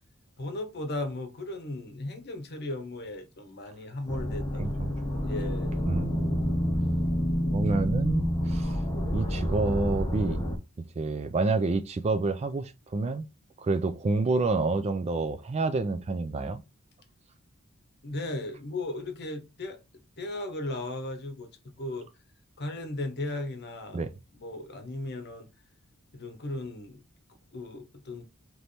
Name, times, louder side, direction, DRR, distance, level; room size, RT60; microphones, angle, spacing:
voice 1, 0.4-4.8 5.2-5.9 18.0-19.8 20.2-21.5 21.8-22.1 22.6-24.0 24.3-25.5 26.1-27.0 27.5-28.3, left 2 dB, 50° left, 1.0 m, -36 dB
sound 1, 4.1-10.6, equal, 20° left, 0.8 m, -28 dB
voice 2, 4.6-4.9 5.9-6.7 7.5-8.8 9.1-10.4 11.0-13.2 13.6-16.6 23.9-24.1, right 3 dB, 30° right, 0.3 m, -28 dB
3.3 x 3.0 x 4.1 m
head